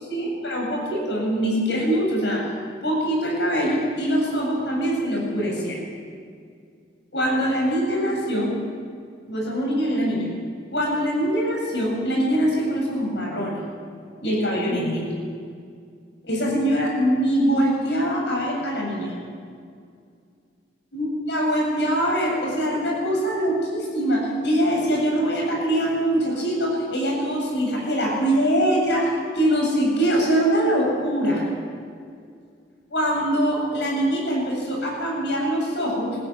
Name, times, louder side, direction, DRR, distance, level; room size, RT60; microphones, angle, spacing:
voice 1, 0.0-2.5 2.8-5.8 7.1-8.5 9.3-10.3 10.7-13.6 14.2-15.1 16.2-19.1 20.9-31.5 32.9-36.2, equal, 70° left, -2 dB, 8.0 m, -23 dB
21.5 x 15.0 x 9.4 m, 2.2 s
head